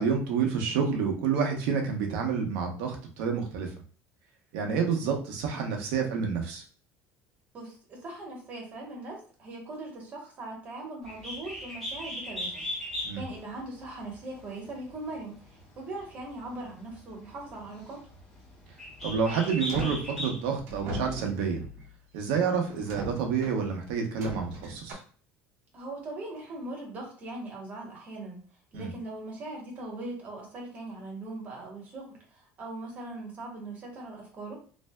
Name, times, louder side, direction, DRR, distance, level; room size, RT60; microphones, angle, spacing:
voice 1, 0.0-3.7 4.5-6.6 13.0-13.2 19.0-21.6 22.1-25.0 28.7-28.9, right 6 dB, 90° right, 3 dB, 0.8 m, -29 dB
voice 2, 7.5-12.6 12.9-18.1 25.7-28.4 28.7-34.6, right 2 dB, 30° right, -1 dB, 1.1 m, -40 dB
Bird, 11.0-20.6, left 1 dB, 10° left, 1.0 m, -39 dB
sound 1, 19.0-20.1 20.7-21.9 22.7-23.6 24.2-24.9, right 1 dB, 55° right, 0.8 m, -39 dB
3.2 x 2.5 x 2.2 m, 0.42 s
cardioid pair, 170°, 5 cm